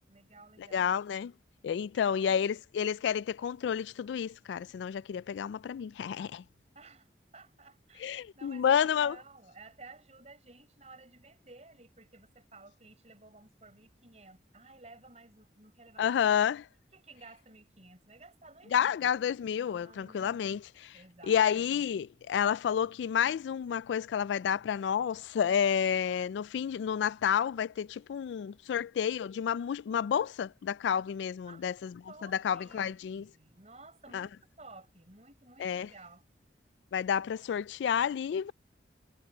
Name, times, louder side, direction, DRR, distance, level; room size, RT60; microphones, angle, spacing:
voice 1, 0.0-0.9 1.9-2.5 6.7-16.4 16.9-19.1 19.8-20.4 20.9-21.7 31.4-36.2 37.4-37.5, right 3 dB, 40° right, 5.2 m, -55 dB
voice 2, 0.7-1.3 1.6-6.4 8.0-9.1 16.0-16.7 18.7-21.0 21.3-31.9 32.4-33.3 34.1-34.3 35.6-35.9 36.9-38.5, left 8 dB, 80° left, 0.3 m, -30 dB
head